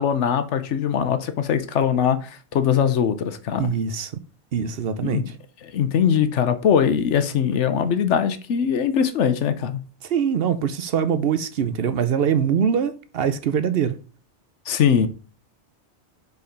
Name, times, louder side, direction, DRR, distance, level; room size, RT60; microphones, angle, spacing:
voice 1, 0.0-3.7 5.0-5.3 5.7-9.8 14.7-15.1, left 8 dB, 80° left, 1.1 m, -21 dB
voice 2, 3.6-4.1 4.5-5.2 10.0-14.0, right 7 dB, 60° right, 0.8 m, -23 dB
5.2 x 4.7 x 5.2 m
omnidirectional pair, 1.2 m